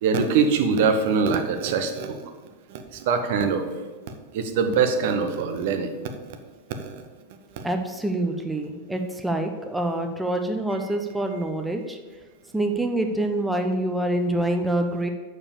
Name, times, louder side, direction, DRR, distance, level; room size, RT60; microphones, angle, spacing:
voice 1, 0.0-2.2 2.7-3.7 4.3-5.9 6.7-6.9 7.6-7.7, right 5 dB, 50° right, 6 dB, 0.8 m, -23 dB
voice 2, 7.6-12.0 12.5-15.1, right 1 dB, 5° right, 5 dB, 0.6 m, -26 dB
6.8 x 4.8 x 6.9 m, 1.3 s
figure-of-eight pair, 90°, 0 cm